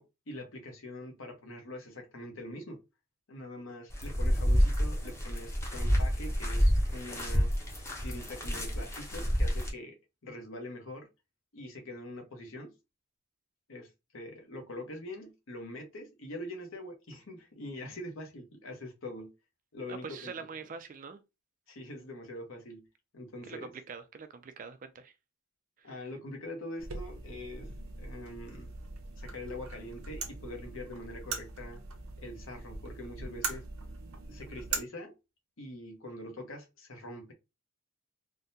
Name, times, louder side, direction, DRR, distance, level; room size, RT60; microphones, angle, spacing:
voice 1, 0.0-2.8 3.3-7.5 8.0-10.0 10.2-11.1 11.5-12.7 13.7-19.3 19.7-20.7 21.7-22.9 23.1-23.7 25.8-27.7 28.0-28.7 29.2-31.8 32.2-33.6 34.2-35.1 35.6-37.3, left 1 dB, 65° left, 0.9 m, -44 dB
sound 1, 3.9-9.7, equal, 15° left, 0.7 m, -28 dB
voice 2, 19.9-21.2 23.5-25.1 25.8-26.0, right 5 dB, 40° right, 0.3 m, -44 dB
sound 2, 26.8-34.8, right 4 dB, 80° right, 0.7 m, -41 dB
3.6 x 2.1 x 2.7 m
head